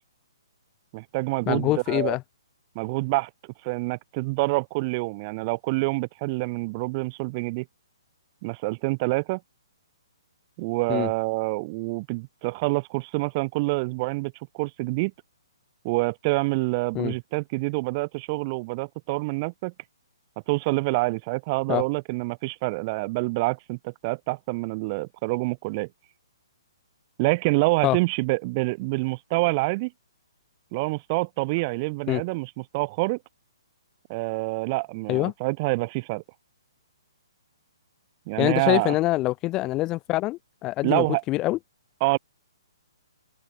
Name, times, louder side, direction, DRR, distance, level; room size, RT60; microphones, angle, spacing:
voice 1, 0.9-2.2 2.8-3.3 3.6-7.7 8.4-9.4 10.6-15.1 15.8-19.7 20.5-25.9 27.2-29.9 30.7-33.2 34.1-36.2 38.3-39.0 40.8-41.2 42.0-42.2, right 25 dB, 30° right, 7.4 m, -27 dB
voice 2, 1.5-2.2 10.9-11.1 16.9-17.1 21.7-21.8 27.8-28.0 32.1-32.2 35.1-35.3 38.4-41.6, left 18 dB, 20° left, 5.3 m, -25 dB
open air
hypercardioid pair, 155°, 3 cm